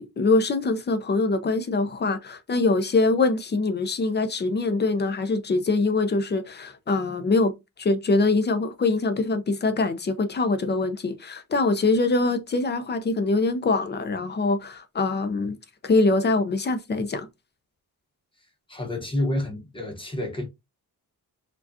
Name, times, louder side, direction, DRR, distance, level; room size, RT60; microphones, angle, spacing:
voice 1, 0.0-7.5 7.8-15.6 15.8-17.3, left 3 dB, 30° left, 0.5 m, -23 dB
voice 2, 18.7-20.5, left 1 dB, 15° left, 0.9 m, -29 dB
4.7 x 2.3 x 2.6 m
wide cardioid pair, 160°, 36 cm